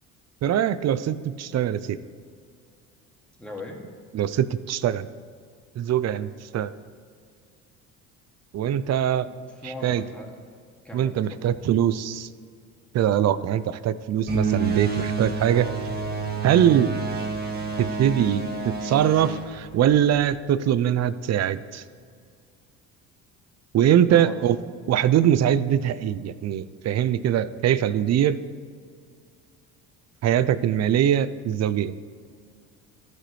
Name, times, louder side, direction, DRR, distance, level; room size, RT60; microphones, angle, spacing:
voice 1, 0.4-2.0 4.1-5.1 5.8-6.3 6.5-6.7 8.5-9.3 9.8-10.0 10.9-12.3 12.9-15.7 16.4-16.9 17.8-21.8 23.7-24.6 24.9-28.4 30.2-31.9, right 10 dB, 45° right, 15 dB, 0.5 m, -22 dB
voice 2, 3.4-3.9 9.2-10.3 10.8-11.6 15.5-15.7 24.1-24.4, left 1 dB, 5° left, -2 dB, 2.3 m, -40 dB
sound 1, 14.3-20.3, right 4 dB, 25° right, 1.7 m, -29 dB
14.5 x 6.1 x 3.2 m, 2.1 s
supercardioid pair, 70°, 38 cm